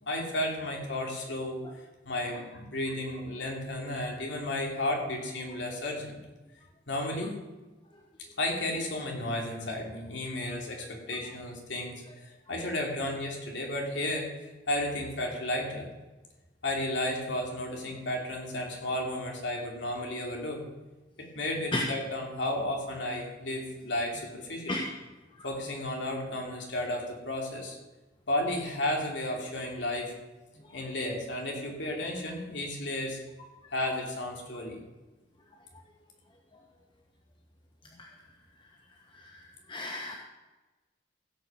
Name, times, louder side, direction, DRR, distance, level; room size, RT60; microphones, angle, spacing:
voice 1, 0.0-1.6 2.0-6.2 6.9-7.4 8.4-15.9 16.6-20.6 21.2-24.8 25.4-27.8 28.3-30.1 30.7-33.2 33.7-34.8, left 1 dB, 65° left, 0 dB, 3.1 m, -33 dB
voice 2, 39.7-40.1, left 2 dB, 25° left, 0 dB, 1.2 m, -31 dB
16.0 x 6.7 x 7.3 m, 1.1 s
head